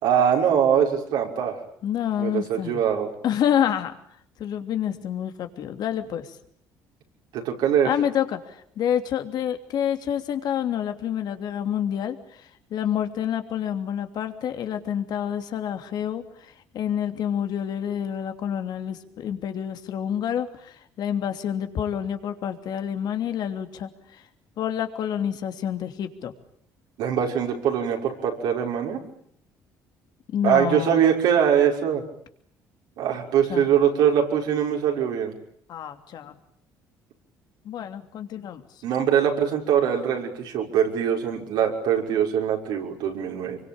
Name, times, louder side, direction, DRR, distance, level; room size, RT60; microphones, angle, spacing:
voice 1, 0.0-1.6 2.2-3.1 7.3-7.9 27.0-29.0 30.4-32.0 33.0-35.3 38.8-43.6, right 8 dB, 80° right, 1 dB, 6.0 m, -22 dB
voice 2, 1.8-2.8 3.2-3.9 4.4-6.4 7.8-12.2 12.7-24.2 24.6-26.3 30.3-31.1 33.5-33.7 35.7-36.4 37.6-38.6, left 9 dB, 65° left, 7 dB, 3.0 m, -28 dB
25.5 x 23.5 x 8.9 m, 0.66 s
supercardioid pair, 75°, 8 cm